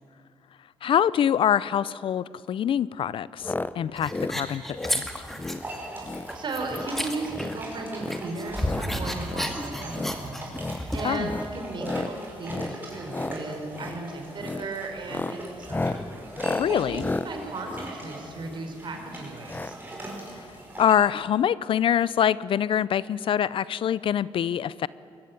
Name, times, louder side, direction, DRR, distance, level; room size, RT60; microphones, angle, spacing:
voice 1, 0.8-5.1 11.0-11.3 16.4-17.0 20.4-20.5 20.8-24.9, left 9 dB, 65° left, 20 dB, 0.5 m, -25 dB
sound 1, 3.4-3.7 4.0-4.4 4.7-5.0 5.4-5.6 6.0-6.3 6.6-6.9 7.2-7.6 8.0-8.9 9.2-9.5 9.9-10.2 10.5-10.8 11.2-11.5 11.8-12.1 12.4-12.8 13.0-13.4 13.7-14.0 14.4-14.7 15.0-18.7 19.5-19.7 20.0-20.1 20.3-20.4, left 2 dB, 20° left, 0.7 m, -33 dB
sound 2, 4.0-5.8 6.1-7.8 8.1-11.2, equal, 5° left, 2.2 m, -32 dB
sound 3, 5.5-21.1, right 1 dB, 20° right, 5.8 m, -41 dB
voice 2, 6.3-16.0 16.7-19.7, right 3 dB, 55° right, 3 dB, 4.7 m, -36 dB
22.5 x 14.5 x 9.5 m, 2.6 s
cardioid pair, 85°, 10 cm